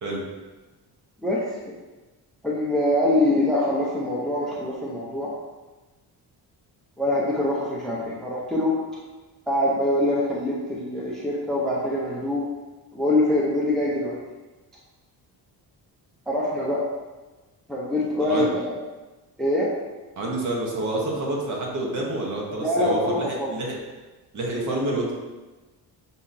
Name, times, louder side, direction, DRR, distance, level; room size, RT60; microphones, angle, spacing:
voice 1, 2.4-5.3 7.0-8.7 9.5-12.4 12.9-14.2 16.3-16.8 17.7-18.7 19.4-19.7 22.6-23.5, left 1 dB, ahead, -5 dB, 0.5 m, -24 dB
voice 2, 20.2-23.7 24.3-25.1, right 1 dB, 50° right, -2 dB, 1.0 m, -28 dB
5.5 x 2.8 x 2.5 m, 1.2 s
cardioid pair, 150°, 40 cm